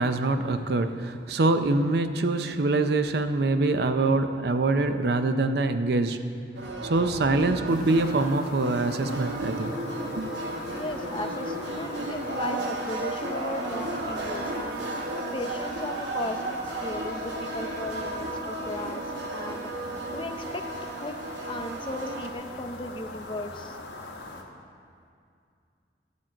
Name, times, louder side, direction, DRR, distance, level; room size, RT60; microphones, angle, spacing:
voice 1, 0.0-6.2 6.8-9.7 10.2-10.3, right 2 dB, 60° right, 9 dB, 0.5 m, -24 dB
sound 1, 6.6-22.3, right 2 dB, 75° right, 1.0 m, -34 dB
sound 2, 7.7-24.4, left 2 dB, 70° left, 1.0 m, -41 dB
voice 2, 10.7-14.8 15.3-19.0 19.3-19.7 20.1-20.6 21.0-21.2 21.5-23.8, left 1 dB, 25° left, 5 dB, 0.6 m, -36 dB
12.5 x 4.5 x 7.4 m, 2.4 s
head